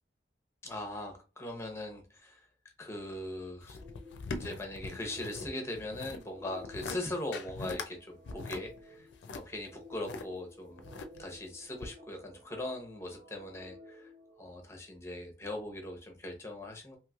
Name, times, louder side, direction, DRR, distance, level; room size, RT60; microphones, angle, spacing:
voice 1, 0.6-2.5 2.8-3.8 4.3-10.9 11.2-14.1 14.4-17.0, left 1 dB, 15° left, 0.7 m, -40 dB
sound 1, 3.6-5.5 5.8-6.2 6.6-7.0 7.3-7.9 8.3-10.2 10.8-11.4 11.8-11.9, left 3 dB, 90° left, 0.4 m, -41 dB
sound 2, 3.7-15.1, left 2 dB, 35° right, 0.5 m, -54 dB
3.0 x 2.9 x 2.4 m
head